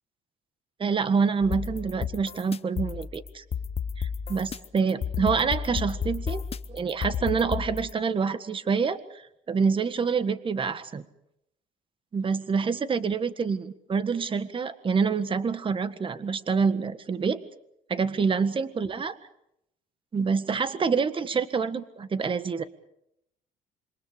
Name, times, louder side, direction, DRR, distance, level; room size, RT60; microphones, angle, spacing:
voice 1, 0.8-3.4 4.0-6.4 6.7-9.2 9.5-11.0 12.1-17.4 17.9-19.2 20.1-22.6, right 5 dB, 30° right, 12 dB, 1.6 m, -27 dB
sound 1, 1.4-7.9, left 7 dB, 35° left, 1.0 m, -32 dB
27.0 x 25.0 x 5.1 m, 0.77 s
cardioid pair, 110°, 17 cm